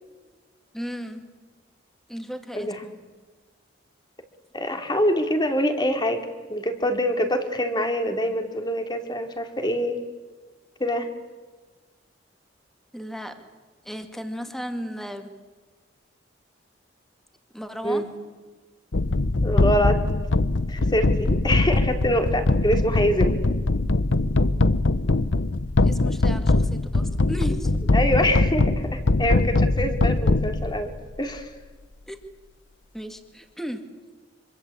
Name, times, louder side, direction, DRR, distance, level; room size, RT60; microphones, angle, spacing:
voice 1, 0.7-1.4 2.1-3.0 12.9-13.5 13.8-15.4 17.5-18.1 25.8-27.9 32.1-32.2 32.9-33.9, equal, ahead, 6 dB, 2.3 m, -35 dB
voice 2, 4.5-10.0 10.8-11.1 17.8-18.1 19.4-20.0 20.7-23.4 27.9-30.9 31.2-31.5, equal, 25° left, 6 dB, 2.8 m, -25 dB
sound 1, 18.9-31.0, left 2 dB, 70° left, 0.9 m, -22 dB
26.0 x 24.0 x 8.6 m, 1.3 s
head